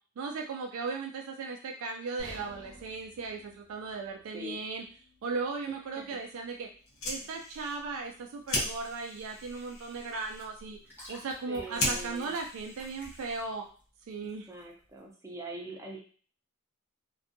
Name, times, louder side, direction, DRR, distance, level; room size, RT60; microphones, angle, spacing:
voice 1, 0.2-4.8 5.2-6.7 7.0-10.8 11.1-13.7 14.1-14.5, right 4 dB, 75° right, 3 dB, 0.3 m, -37 dB
sound 1, 2.2-6.2 6.6-6.8 7.3-7.4, left 1 dB, 40° left, 1.3 m, -53 dB
voice 2, 5.7-6.0 11.5-12.3 14.5-16.0, right 1 dB, 15° right, -1 dB, 0.5 m, -43 dB
Fire, 6.8-13.7, left 1 dB, 70° left, 0.7 m, -38 dB
sound 2, 8.4-15.0, equal, 10° left, 0.8 m, -54 dB
2.6 x 2.3 x 2.5 m, 0.42 s
head